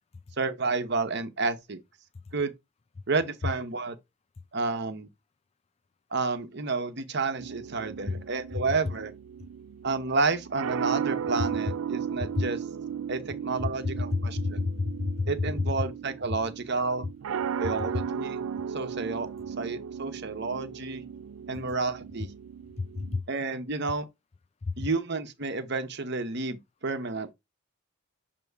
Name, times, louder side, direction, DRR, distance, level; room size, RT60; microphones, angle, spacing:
voice 1, 0.4-1.8 2.3-2.5 3.1-3.9 4.5-5.1 6.1-9.1 9.8-12.6 13.1-14.7 15.3-17.1 17.6-18.4 18.7-19.3 19.6-21.0 21.5-22.3 23.3-24.0 24.8-27.3, right 3 dB, 55° right, 1.0 m, -30 dB
sound 1, 7.4-23.2, right 8 dB, 90° right, 0.4 m, -36 dB
voice 2, 14.1-15.3 22.8-23.2 24.6-24.7, left 3 dB, 30° left, 0.3 m, -29 dB
6.9 x 2.9 x 4.6 m
head